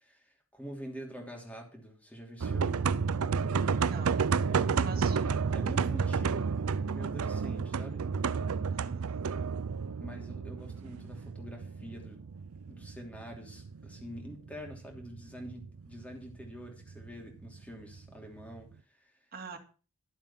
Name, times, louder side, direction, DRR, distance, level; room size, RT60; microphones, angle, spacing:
voice 1, 0.0-2.9 4.4-6.5 6.8-8.0 10.0-12.2 12.7-19.2, equal, 5° left, 1 dB, 3.0 m, -46 dB
sound 1, 2.4-18.6, right 5 dB, 80° right, 0.5 m, -31 dB
voice 2, 3.8-4.3 4.8-5.2 8.7-9.3 19.3-19.6, right 4 dB, 40° right, 4 dB, 2.2 m, -45 dB
12.5 x 7.4 x 5.7 m, 0.36 s
head